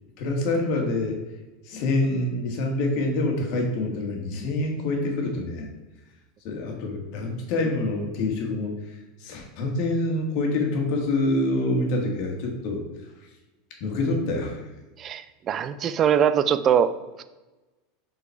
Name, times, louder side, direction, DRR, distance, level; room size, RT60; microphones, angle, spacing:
voice 1, 0.2-1.2 1.6-5.7 6.4-12.8 13.8-14.6, left 2 dB, 55° left, 2 dB, 1.6 m, -26 dB
voice 2, 15.0-16.9, right 8 dB, 35° right, 13 dB, 0.4 m, -22 dB
5.4 x 4.1 x 4.5 m, 1.1 s
supercardioid pair, 135°, 0 cm